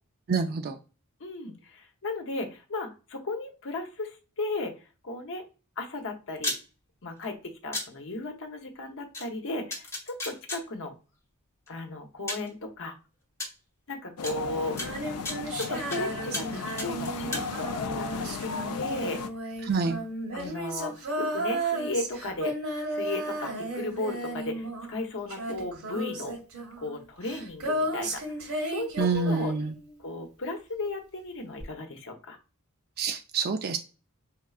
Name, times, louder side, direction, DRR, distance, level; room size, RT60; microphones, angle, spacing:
voice 1, 0.3-0.8 19.6-20.0 29.0-29.7 33.0-33.8, right 4 dB, 45° right, 6 dB, 0.4 m, -27 dB
voice 2, 1.2-4.7 5.0-5.4 5.8-6.5 7.0-10.9 11.7-12.9 13.9-15.0 15.6-19.2 20.3-22.5 22.9-26.4 26.8-28.2 28.6-29.5 30.0-32.4, left 2 dB, 60° left, 4 dB, 0.9 m, -35 dB
sound 1, 6.4-6.6 7.7-7.9 9.1-9.2 9.7-10.6 11.7-11.8 12.3-12.5 13.4-13.5 14.2-14.3 14.8-16.0 16.3-16.5 16.8-17.5, left 2 dB, 15° left, 1.0 m, -33 dB
sound 2, 14.2-19.3, left 5 dB, 80° left, 0.4 m, -35 dB
Female singing, 14.7-30.1 31.6-31.7, right 1 dB, 70° right, 1.7 m, -34 dB
4.5 x 3.6 x 2.4 m, 0.33 s
head